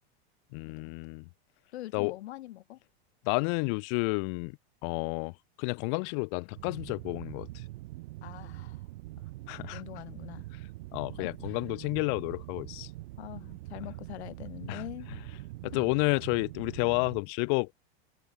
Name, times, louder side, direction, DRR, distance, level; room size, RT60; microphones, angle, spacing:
voice 1, 0.5-1.3 1.9-2.1 3.2-4.6 4.8-7.6 9.5-9.8 10.9-12.9 14.7-14.8 15.6-17.8, left 39 dB, 30° left, 0.4 m, -31 dB
voice 2, 1.7-2.8 8.2-8.8 9.7-10.5 11.2-11.6 13.2-15.1 15.7-15.8 16.1-16.2, left 15 dB, 75° left, 1.5 m, -43 dB
sound 1, 6.5-17.2, right 18 dB, 60° right, 1.3 m, -43 dB
supercardioid pair, 165°, 33 cm